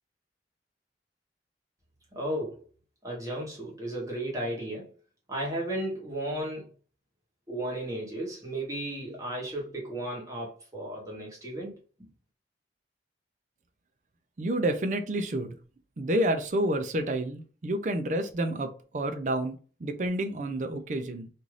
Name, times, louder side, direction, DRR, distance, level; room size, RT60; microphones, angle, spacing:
voice 1, 2.1-2.7 3.0-4.9 5.3-6.7 7.5-12.1, right 1 dB, 20° right, 1.0 m, -34 dB
voice 2, 14.4-15.6 16.0-21.3, right 1 dB, 45° right, 0.4 m, -29 dB
2.6 x 2.4 x 3.1 m
head